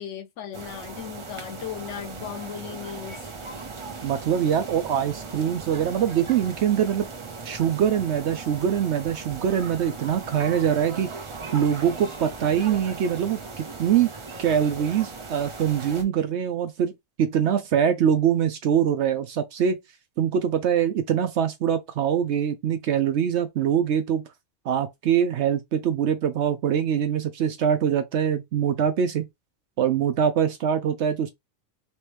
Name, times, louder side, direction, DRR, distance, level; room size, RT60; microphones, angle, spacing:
voice 1, 0.0-3.3, left 9 dB, 65° left, 0.8 m, -37 dB
sound 1, 0.5-16.0, right 4 dB, 45° right, 0.4 m, -38 dB
voice 2, 4.0-7.1 7.4-11.1 11.5-14.1 14.4-19.8 20.2-24.2 24.7-29.3 29.8-31.3, right 8 dB, 65° right, 0.7 m, -23 dB
3.0 x 3.0 x 3.2 m
omnidirectional pair, 1.5 m